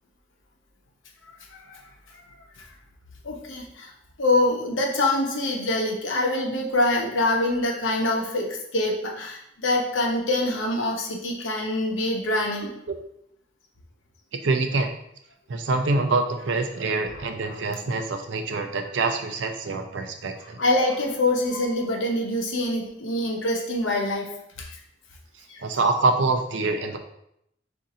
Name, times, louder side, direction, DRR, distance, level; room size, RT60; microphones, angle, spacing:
voice 1, 3.2-3.9 4.2-12.7 17.5-17.6 20.6-24.3 24.6-24.7, left 2 dB, 85° left, 1 dB, 0.8 m, -25 dB
voice 2, 14.4-14.9 15.5-20.6 25.6-27.0, right 3 dB, 70° right, 6 dB, 0.5 m, -25 dB
4.1 x 2.6 x 3.7 m, 0.75 s
head